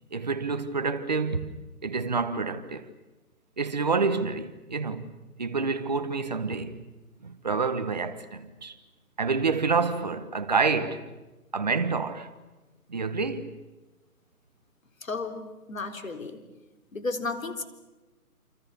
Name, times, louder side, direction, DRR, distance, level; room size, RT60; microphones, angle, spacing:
voice 1, 0.1-2.9 3.6-5.1 5.4-6.8 7.2-8.8 9.2-11.1 11.5-12.3 12.9-13.5, right 4 dB, 30° right, 1.2 m, -28 dB
voice 2, 15.0-16.4 16.9-17.6, left 3 dB, 60° left, 4.0 m, -33 dB
28.5 x 28.0 x 6.8 m
hypercardioid pair, 175°, 46 cm